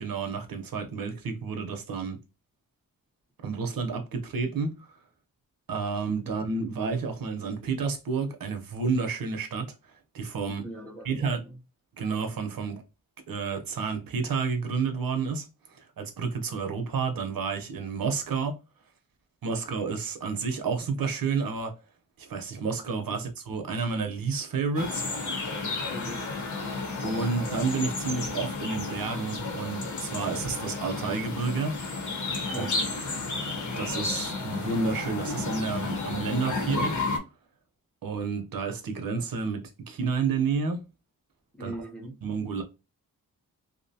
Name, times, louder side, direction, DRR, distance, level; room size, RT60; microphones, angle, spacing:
voice 1, 0.0-2.2 3.4-4.8 5.7-9.7 10.1-10.7 11.0-11.4 12.0-12.8 13.3-15.4 16.0-18.6 19.4-21.7 22.2-25.0 27.0-31.8 32.5-32.7 33.8-37.0 38.0-40.8 41.6-41.8 42.2-42.6, right 5 dB, 70° right, 0.7 m, -30 dB
voice 2, 10.6-11.1 11.4-11.6 25.9-26.2 32.5-33.0 41.6-42.2, right 1 dB, 5° left, 0.7 m, -40 dB
sound 1, 24.7-37.2, left 3 dB, 55° left, 0.8 m, -32 dB
2.6 x 2.1 x 2.7 m
wide cardioid pair, 85°, 35 cm